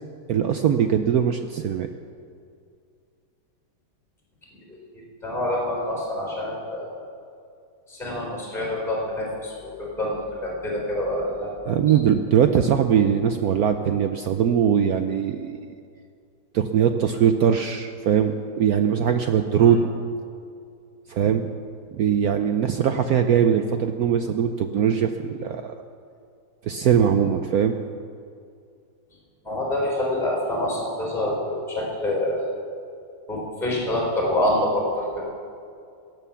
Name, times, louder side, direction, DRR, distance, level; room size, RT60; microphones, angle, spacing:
voice 1, 0.3-1.9 11.7-15.6 16.5-19.8 21.1-21.5 21.9-25.7 26.6-27.7, right 8 dB, 80° right, 7 dB, 0.8 m, -21 dB
voice 2, 4.9-7.0 7.9-12.0 19.6-19.8 29.4-32.5 33.3-35.2, left 1 dB, ahead, -3 dB, 3.9 m, -27 dB
17.0 x 9.1 x 7.2 m, 2.4 s
omnidirectional pair, 2.3 m